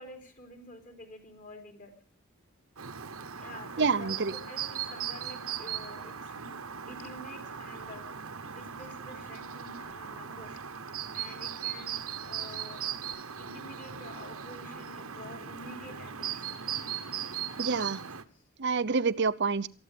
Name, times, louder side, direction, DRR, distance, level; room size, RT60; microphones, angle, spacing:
voice 1, 0.0-1.9 3.4-10.6 11.1-16.6 17.5-17.8 18.3-18.4, left 1 dB, 35° left, 4 dB, 3.7 m, -49 dB
Chirp tweet, 2.8-18.2, right 8 dB, 70° right, 1.2 m, -38 dB
voice 2, 3.8-4.3 17.6-18.0 18.6-19.7, right 4 dB, 50° right, 16 dB, 0.7 m, -27 dB
19.0 x 14.0 x 5.2 m, 0.41 s
head